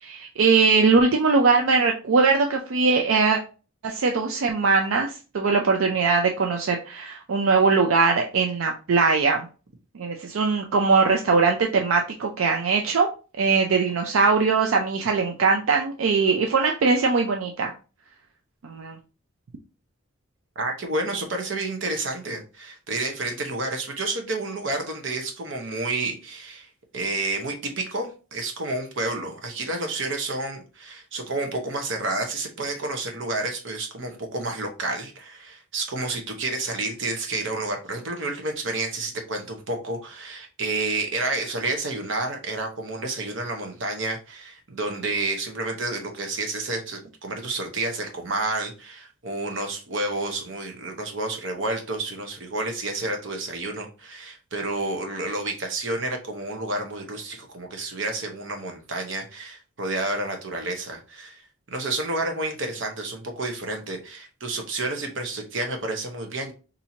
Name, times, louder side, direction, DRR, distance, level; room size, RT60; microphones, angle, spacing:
voice 1, 0.0-3.4 3.8-9.5 9.9-13.1 13.4-17.7 18.6-19.0, right 4 dB, 85° right, 3 dB, 0.5 m, -21 dB
voice 2, 20.6-61.4 61.7-66.5, right 2 dB, 65° right, 4 dB, 0.9 m, -30 dB
4.3 x 2.7 x 2.7 m, 0.34 s
head